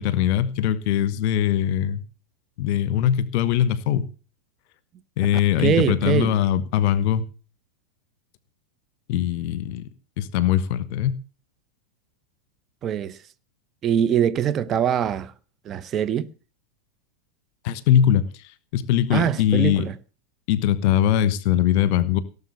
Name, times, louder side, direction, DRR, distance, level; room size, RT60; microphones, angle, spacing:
voice 1, 0.0-2.0 2.6-4.0 5.2-7.2 9.1-9.9 10.2-11.1 17.6-18.3 18.7-19.9 20.5-22.2, left 10 dB, 45° left, 1.2 m, -21 dB
voice 2, 5.6-6.3 12.8-13.2 13.8-15.3 15.6-16.3 19.1-19.9, right 9 dB, 30° right, 0.8 m, -23 dB
17.5 x 7.1 x 7.0 m
figure-of-eight pair, 90°, 0 cm